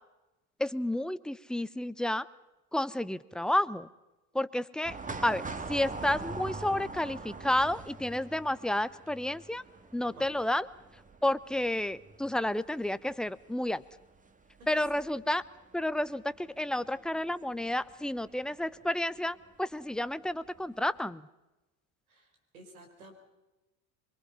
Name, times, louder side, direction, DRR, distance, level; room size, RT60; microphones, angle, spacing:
voice 1, 0.6-2.3 2.7-3.9 4.3-5.0 5.2-9.6 9.9-10.7 11.2-13.8 14.7-15.4 15.7-21.3, left 1 dB, ahead, 16 dB, 0.7 m, -31 dB
sound 1, 4.8-18.9 19.2-19.3 20.3-20.6 21.0-21.1, right 3 dB, 20° right, 1.8 m, -44 dB
voice 2, 22.1-23.1, right 2 dB, 85° right, 4 dB, 5.0 m, -52 dB
24.5 x 23.0 x 5.6 m, 1.0 s
hypercardioid pair, 80°, 42 cm